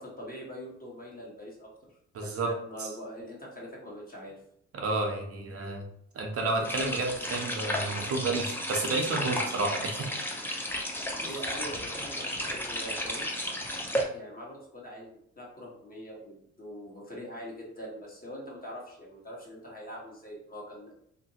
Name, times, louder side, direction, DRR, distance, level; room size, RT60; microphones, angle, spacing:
voice 1, 0.0-1.7 2.2-4.3 10.9-13.3 13.9-20.9, equal, 30° left, -3 dB, 1.1 m, -43 dB
voice 2, 2.1-2.5 2.8-2.9 4.7-5.8 6.1-10.0 11.3-11.4, right 3 dB, 50° right, 1 dB, 0.6 m, -31 dB
sound 1, 6.6-14.0, equal, 5° left, 0.5 m, -33 dB
2.9 x 2.5 x 2.7 m, 0.72 s
cardioid pair, 90°, 30 cm